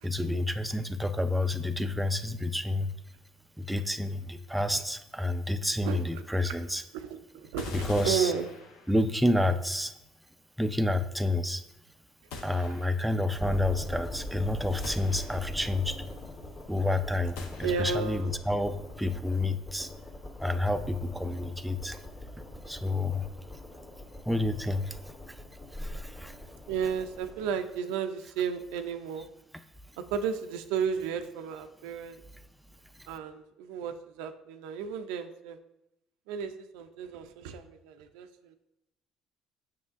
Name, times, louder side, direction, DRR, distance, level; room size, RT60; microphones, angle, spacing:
voice 1, 0.0-2.9 3.6-6.8 7.7-8.3 8.9-9.9 10.6-11.6 12.4-16.0 16.7-19.9 20.4-22.0 22.7-23.3 24.3-25.0 25.8-26.3, left 1 dB, 5° right, 8 dB, 0.4 m, -29 dB
voice 2, 5.8-6.5 6.9-8.5 17.6-18.3 26.7-29.3 30.0-32.2 33.1-35.6 36.3-38.6, right 6 dB, 85° right, 8 dB, 0.4 m, -33 dB
sound 1, 7.6-9.2 12.3-13.2 14.8-15.8 17.4-18.2, left 4 dB, 85° left, 0.8 m, -44 dB
sound 2, 13.4-27.5, left 1 dB, 40° left, 1.9 m, -42 dB
7.2 x 6.0 x 2.5 m, 0.87 s
supercardioid pair, 85°, 0 cm